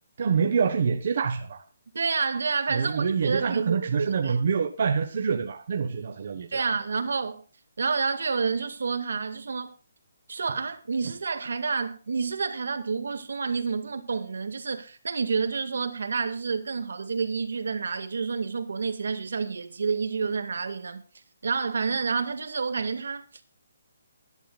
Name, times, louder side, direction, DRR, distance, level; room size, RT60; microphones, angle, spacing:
voice 1, 0.2-1.6 2.7-6.7, right 6 dB, 40° right, 1.2 m, -26 dB
voice 2, 1.9-4.4 6.5-7.4 7.8-9.7 10.3-21.0 21.4-23.4, right 5 dB, 70° right, 2.0 m, -29 dB
20.5 x 11.0 x 2.4 m
hypercardioid pair, 180°, 0 cm